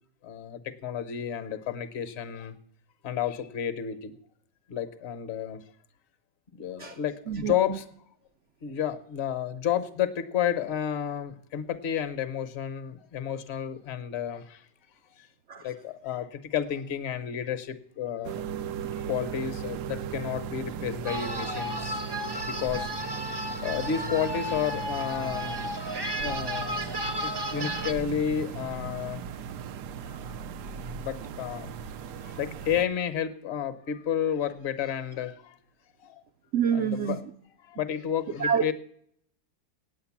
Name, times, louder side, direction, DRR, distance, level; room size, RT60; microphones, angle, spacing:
voice 1, 0.2-2.5 3.0-4.1 4.7-5.6 6.6-7.8 8.6-14.6 15.6-18.4 19.1-22.0 22.4-22.9 23.6-25.7 26.2-26.9 27.2-29.2 30.0-30.2 31.0-31.7 32.2-35.5 36.0-36.2 36.7-37.2 37.7-38.7, left 9 dB, 50° left, 12 dB, 1.0 m, -31 dB
voice 2, 7.3-7.8 15.5-15.6 36.5-37.2 38.4-38.7, right 7 dB, 65° right, 6 dB, 0.8 m, -27 dB
sound 1, 18.2-32.9, right 7 dB, 90° right, 1.3 m, -37 dB
sound 2, 21.0-27.9, equal, 25° right, 0.6 m, -33 dB
8.9 x 8.8 x 7.2 m, 0.66 s
omnidirectional pair, 1.7 m